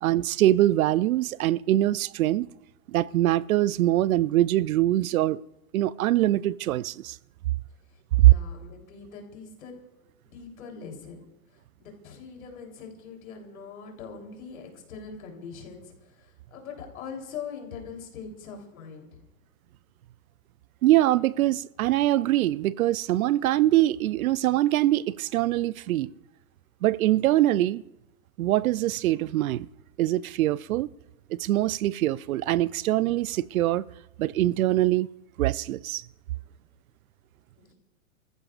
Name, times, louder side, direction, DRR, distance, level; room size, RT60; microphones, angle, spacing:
voice 1, 0.0-2.5 2.9-5.4 5.7-7.2 8.2-8.3 20.8-26.1 26.8-27.8 28.4-29.7 30.0-30.9 31.3-33.9 34.2-35.1 35.4-36.0, right 15 dB, 80° right, 0.5 m, -23 dB
voice 2, 7.9-9.8 10.2-11.2 11.5-19.2 37.6-37.7, left 6 dB, 80° left, 3.6 m, -42 dB
27.0 x 14.5 x 2.5 m
hypercardioid pair, 140°, 41 cm